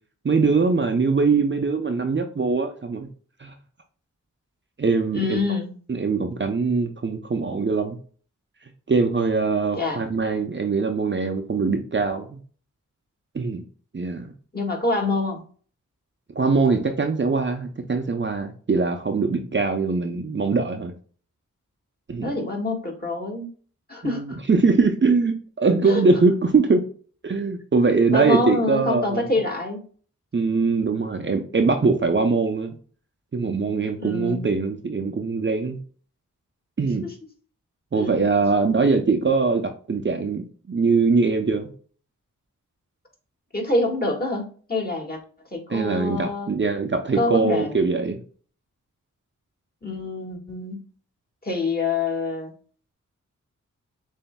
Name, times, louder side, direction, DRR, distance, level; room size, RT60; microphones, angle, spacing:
voice 1, 0.2-3.1 3.4-3.5 4.8-5.4 5.9-8.0 8.9-12.4 13.3-13.6 13.9-14.3 16.3-20.9 22.1-22.3 24.0-26.8 27.2-29.3 30.3-32.8 33.3-35.8 36.8-37.1 37.9-41.7 45.7-48.2, right 4 dB, 35° right, 5 dB, 0.7 m, -22 dB
voice 2, 5.1-5.7 9.8-10.0 14.5-15.4 22.2-23.5 23.9-24.4 25.9-26.0 28.1-29.8 34.0-34.5 38.0-38.1 43.5-45.2 45.5-46.6 47.1-47.7 49.8-50.8 51.4-52.5, left 2 dB, 30° left, 0 dB, 1.8 m, -26 dB
6.9 x 2.8 x 2.2 m, 0.43 s
cardioid pair, 50°, 32 cm